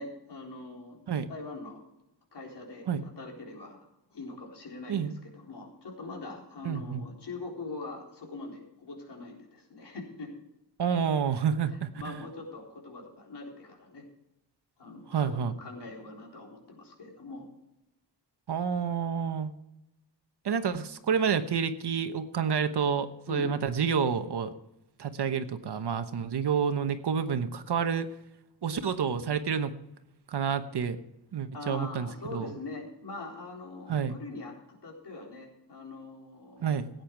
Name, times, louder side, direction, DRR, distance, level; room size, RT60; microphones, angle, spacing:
voice 1, 0.0-1.0 1.3-1.8 2.3-3.9 4.1-10.3 12.0-14.0 14.8-17.5 23.3-23.5 31.5-36.8, left 3 dB, 65° left, -1 dB, 4.1 m, -42 dB
voice 2, 6.6-7.0 10.8-12.2 15.1-15.5 18.5-19.5 20.4-24.5 25.0-28.1 28.6-29.7 30.3-31.0 31.3-32.5 33.9-34.2 36.6-36.9, right 7 dB, 65° right, 9 dB, 1.1 m, -29 dB
16.5 x 9.2 x 4.6 m, 0.87 s
wide cardioid pair, 180°, 43 cm